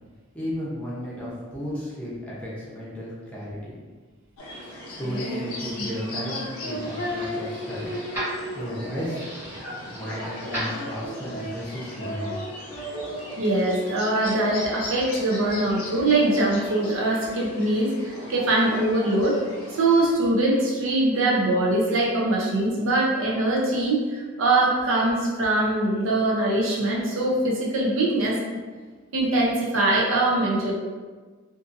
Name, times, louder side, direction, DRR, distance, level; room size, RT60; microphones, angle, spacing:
voice 1, 0.3-3.7 5.0-8.0 8.5-9.2 9.9-12.3, equal, 5° left, -8 dB, 0.6 m, -34 dB
sound 1, 4.4-20.1, left 1 dB, 90° left, 0.6 m, -39 dB
Female singing, 4.5-15.5, equal, 45° left, 0.5 m, -36 dB
sound 2, 5.6-11.3, equal, 10° right, 1.1 m, -38 dB
voice 2, 13.4-19.4 19.7-28.4 29.1-30.7, right 2 dB, 70° right, -3 dB, 0.6 m, -22 dB
2.6 x 2.5 x 2.5 m, 1.4 s
head